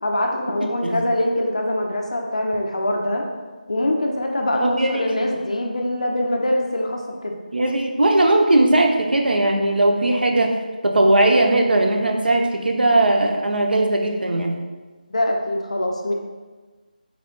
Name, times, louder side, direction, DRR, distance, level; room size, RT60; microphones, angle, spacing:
voice 1, 0.0-3.2 3.7-7.3 15.1-16.1, left 1 dB, 45° left, 1 dB, 0.5 m, -23 dB
voice 2, 0.6-1.0 4.6-5.0 7.5-10.5 10.8-14.5, right 2 dB, 85° right, 2 dB, 0.6 m, -18 dB
3.5 x 2.1 x 3.7 m, 1.3 s
figure-of-eight pair, 175°, 5 cm